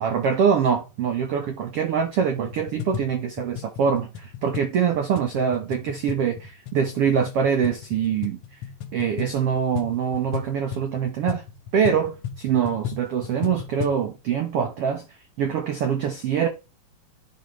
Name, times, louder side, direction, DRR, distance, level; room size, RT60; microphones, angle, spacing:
voice 1, 0.0-8.4 8.9-11.4 11.7-15.1 15.4-16.5, right 7 dB, 85° right, 1.3 m, -24 dB
sound 1, 2.4-14.1, left 9 dB, 80° left, 1.4 m, -36 dB
11.5 x 5.4 x 3.1 m
omnidirectional pair, 4.1 m